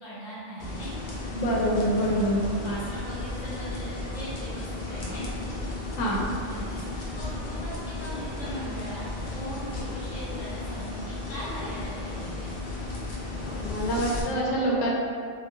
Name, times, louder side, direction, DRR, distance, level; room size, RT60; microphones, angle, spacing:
voice 1, 0.0-1.1 2.4-5.3 6.5-9.0 9.3-12.5, equal, 25° left, -9 dB, 0.7 m, -40 dB
sound 1, 0.6-14.2, left 2 dB, 60° left, 0.5 m, -34 dB
voice 2, 1.3-2.4 6.0-6.2 13.6-14.9, equal, 85° left, -4 dB, 1.0 m, -25 dB
2.8 x 2.3 x 2.5 m, 2.3 s
omnidirectional pair, 1.3 m